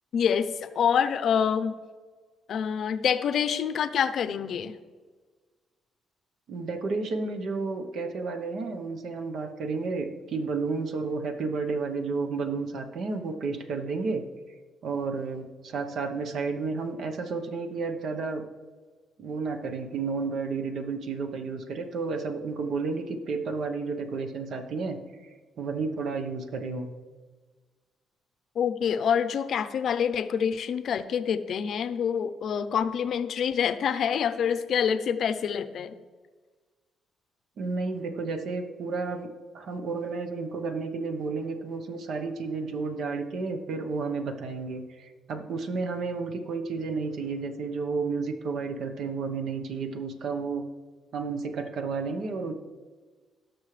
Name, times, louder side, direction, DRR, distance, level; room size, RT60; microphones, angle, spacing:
voice 1, 0.1-1.7 2.5-4.7 28.6-35.9, left 7 dB, 65° left, 12 dB, 0.6 m, -26 dB
voice 2, 6.5-14.2 14.8-18.4 19.2-25.0 25.6-26.9 37.6-50.7 51.1-52.5, right 4 dB, 65° right, 6 dB, 1.0 m, -31 dB
18.0 x 6.2 x 3.3 m, 1.4 s
cardioid pair, 90°, 0 cm